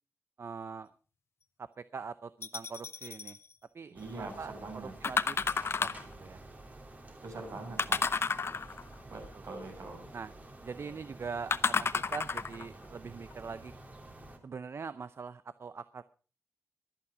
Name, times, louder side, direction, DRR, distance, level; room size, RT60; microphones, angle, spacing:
voice 1, 0.4-0.9 1.8-3.4 3.7-6.4 9.3-9.4 10.1-10.3 10.6-13.7 14.4-16.0, right 5 dB, 50° right, 14 dB, 0.6 m, -43 dB
sound 1, 2.4-3.4 5.0-6.1 7.8-8.9 11.5-12.7 13.3-13.4, left 5 dB, 50° left, 0.7 m, -31 dB
voice 2, 3.9-4.9 7.2-8.2 9.1-10.1, right 2 dB, 70° right, 2 dB, 6.9 m, -43 dB
sound 2, 4.0-14.4, right 2 dB, 30° right, 2.8 m, -50 dB
23.5 x 8.7 x 4.9 m, 0.38 s
wide cardioid pair, 110°, 5 cm